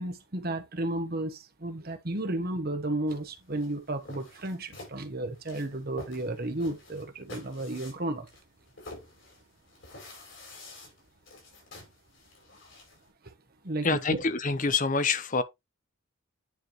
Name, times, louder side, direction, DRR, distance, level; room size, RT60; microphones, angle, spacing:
voice 1, 0.0-8.3 13.2-13.3 13.6-13.9, right 1 dB, 45° right, 1.1 m, -33 dB
sound 1, 3.1-13.1, left 2 dB, 60° left, 5.0 m, -49 dB
voice 2, 13.8-15.4, left 4 dB, 40° left, 0.7 m, -26 dB
9.5 x 4.8 x 3.0 m
head